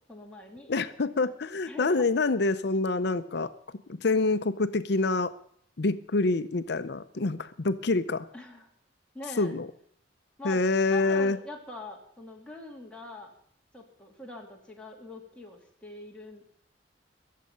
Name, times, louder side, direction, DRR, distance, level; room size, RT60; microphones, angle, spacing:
voice 1, 0.1-0.7 1.7-2.1 8.3-8.7 9.1-9.5 10.4-10.6 10.9-13.3 13.7-16.4, left 1 dB, 5° left, -2 dB, 2.6 m, -43 dB
voice 2, 0.7-3.5 3.9-5.3 5.8-8.2 9.4-9.7 10.4-11.4, left 3 dB, 65° left, 12 dB, 0.7 m, -26 dB
22.5 x 7.6 x 6.8 m, 0.63 s
head